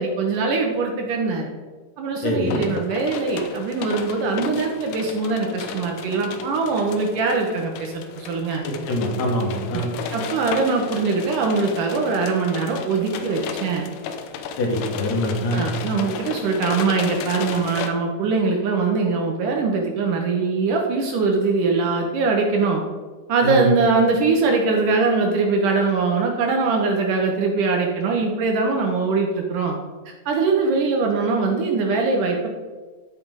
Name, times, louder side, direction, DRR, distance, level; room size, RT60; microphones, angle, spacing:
voice 1, 0.0-1.5 2.0-8.7 9.7-9.8 10.1-13.9 15.5-22.8 23.3-29.8 30.1-32.5, right 4 dB, 70° right, 1 dB, 2.2 m, -22 dB
voice 2, 2.2-2.6 8.6-9.9 14.6-15.7 23.4-23.7, left 1 dB, 55° left, 0 dB, 2.7 m, -24 dB
sound 1, 2.5-17.9, left 6 dB, 85° left, 2.8 m, -34 dB
12.0 x 5.1 x 4.8 m, 1.3 s
omnidirectional pair, 4.4 m